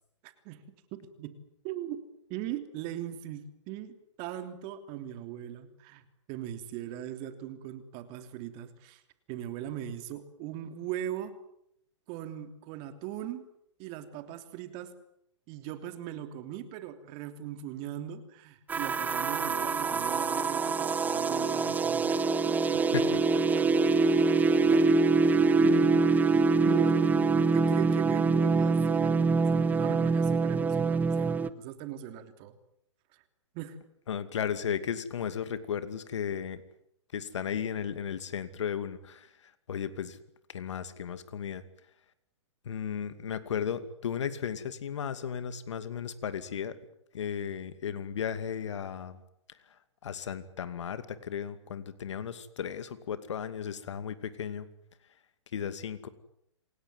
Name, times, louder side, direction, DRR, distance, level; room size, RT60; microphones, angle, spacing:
voice 1, 0.2-0.6 0.9-1.4 1.6-2.0 2.3-6.0 6.3-9.0 9.3-11.3 12.1-13.4 13.8-14.9 15.5-22.8 23.5-23.8 24.7-25.0 25.6-26.0 26.3-32.5 33.1-33.2 33.5-33.8, right 11 dB, 35° right, 9 dB, 3.2 m, -39 dB
sound 1, 18.7-31.5, right 4 dB, 10° right, 0.9 m, -25 dB
voice 2, 34.1-36.6 37.1-40.2 40.5-41.6 42.7-46.8 47.1-49.2 50.0-54.7 55.5-56.1, left 8 dB, 70° left, 12 dB, 2.5 m, -35 dB
27.5 x 18.5 x 9.7 m, 0.76 s
hypercardioid pair, 135°, 16 cm